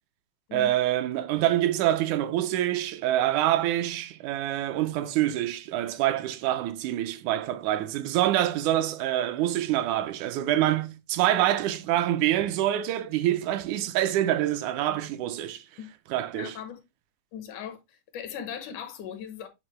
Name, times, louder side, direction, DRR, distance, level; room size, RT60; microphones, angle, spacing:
voice 1, 0.5-15.6 16.1-16.6, right 13 dB, 85° right, 2.0 m, -26 dB
voice 2, 16.3-16.8 17.3-19.5, left 8 dB, 85° left, 2.5 m, -38 dB
8.9 x 3.5 x 3.2 m
omnidirectional pair, 3.5 m